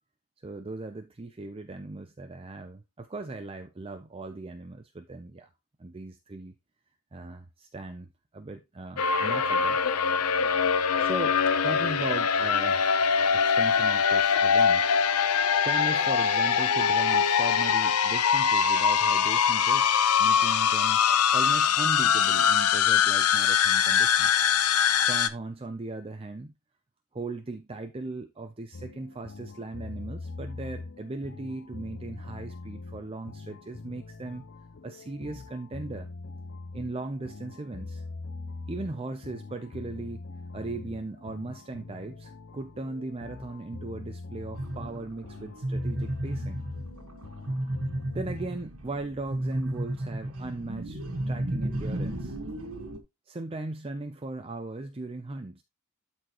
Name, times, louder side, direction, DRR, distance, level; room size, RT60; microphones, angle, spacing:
voice 1, 0.4-5.5 5.8-6.5 7.1-9.8 11.0-13.0 13.3-14.9 15.2-15.3 15.6-21.1 21.3-24.4 25.1-26.5 27.1-34.4 34.8-36.1 36.7-38.0 38.7-40.2 40.5-46.6 48.1-52.4 53.3-55.6, right 2 dB, 25° right, 0.5 m, -38 dB
sound 1, 9.0-25.3, left 7 dB, 90° left, 0.7 m, -23 dB
sound 2, 28.7-48.5, left 3 dB, 50° left, 0.6 m, -42 dB
sound 3, 44.6-53.0, right 1 dB, 70° right, 1.5 m, -34 dB
12.5 x 4.3 x 3.0 m
head